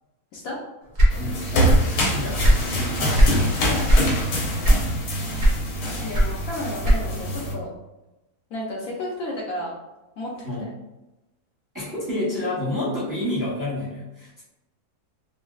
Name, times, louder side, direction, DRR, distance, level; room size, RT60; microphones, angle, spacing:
sound 1, 0.9-2.0 2.2-3.4 3.8-4.1 4.6-5.1 5.4-7.3, right 1 dB, 65° right, 0.4 m, -17 dB
sound 2, 1.1-7.5, equal, 85° left, 1.3 m, -25 dB
voice 1, 1.2-3.9 10.4-10.7 11.7-14.4, left 1 dB, 15° right, -9 dB, 0.7 m, -30 dB
voice 2, 6.0-7.7 8.5-9.8 10.2-10.7, left 1 dB, 70° left, -3 dB, 1.0 m, -32 dB
3.8 x 2.0 x 2.3 m, 0.99 s
omnidirectional pair, 1.7 m